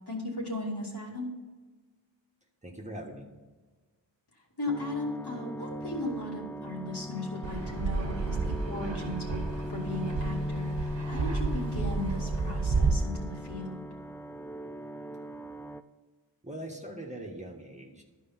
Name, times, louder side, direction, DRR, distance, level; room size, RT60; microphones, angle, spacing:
voice 1, 0.1-1.3 4.6-9.4 9.7-13.8, left 2 dB, 60° left, -2 dB, 2.5 m, -36 dB
voice 2, 2.6-3.3 16.4-18.0, right 1 dB, 15° right, 0 dB, 1.5 m, -41 dB
sound 1, 4.7-15.8, equal, 5° left, 0.4 m, -38 dB
Fixed-wing aircraft airplane, 7.4-12.9, right 4 dB, 75° right, 1.3 m, -31 dB
11.5 x 4.8 x 5.8 m, 1.3 s
wide cardioid pair, 45°, 44 cm